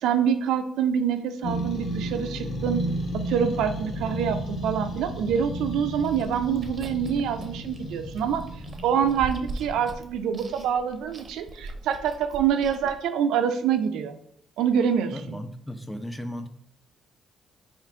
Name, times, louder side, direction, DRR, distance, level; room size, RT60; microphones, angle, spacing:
voice 1, 0.0-2.8 3.1-8.4 8.8-14.2 14.6-15.4, right 8 dB, 85° right, 8 dB, 0.4 m, -26 dB
sound 1, 1.4-9.9, equal, 65° left, 0.8 m, -33 dB
Chewing mastication, 6.0-13.0, right 3 dB, 40° right, 0.6 m, -42 dB
voice 2, 15.1-16.5, equal, 5° left, 8 dB, 0.5 m, -35 dB
3.6 x 2.5 x 4.5 m, 0.67 s
cardioid pair, 90°, 0 cm